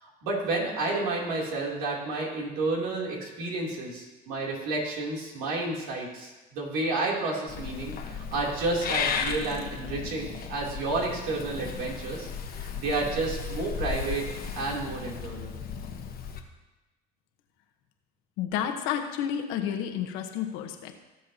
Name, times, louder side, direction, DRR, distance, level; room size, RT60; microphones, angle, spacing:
voice 1, 0.0-12.3 12.6-14.2 14.5-15.5, right 2 dB, 85° right, -3 dB, 3.2 m, -31 dB
Purr / Meow, 7.5-16.4, left 6 dB, 45° left, 1.2 m, -35 dB
voice 2, 18.4-20.9, left 9 dB, 80° left, 5 dB, 1.2 m, -30 dB
17.5 x 7.4 x 2.9 m, 1.1 s
supercardioid pair, 85°, 21 cm